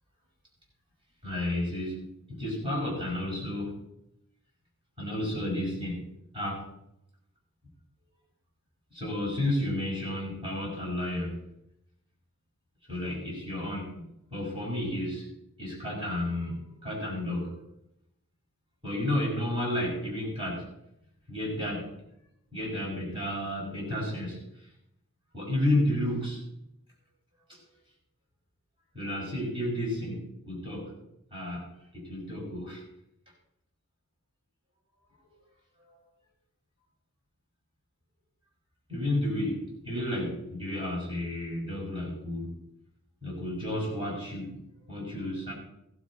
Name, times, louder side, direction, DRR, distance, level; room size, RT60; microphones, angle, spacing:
voice 1, 1.2-3.7 5.0-6.0 6.3-6.7 8.9-11.4 12.9-13.9 14.3-15.3 15.6-17.5 18.8-20.6 21.3-21.9 22.5-24.4 25.3-26.4 27.5-27.6 28.9-30.9 31.3-31.7 31.9-32.8 35.9-36.0 38.9-42.5 43.2-44.6 44.9-45.5, left 1 dB, 25° right, -4 dB, 6.1 m, -32 dB
16.0 x 12.5 x 4.3 m, 0.80 s
head